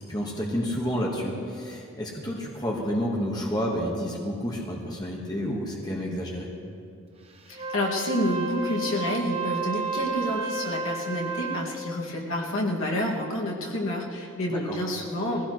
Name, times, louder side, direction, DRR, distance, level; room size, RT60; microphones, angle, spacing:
voice 1, 0.1-6.5 14.5-14.8, equal, 20° left, -2 dB, 1.5 m, -30 dB
voice 2, 7.5-15.5, left 1 dB, 75° left, -3 dB, 2.2 m, -29 dB
Wind instrument woodwind instrument, 7.5-11.8, right 4 dB, 30° right, 0.8 m, -32 dB
20.5 x 16.0 x 3.2 m, 2.5 s
head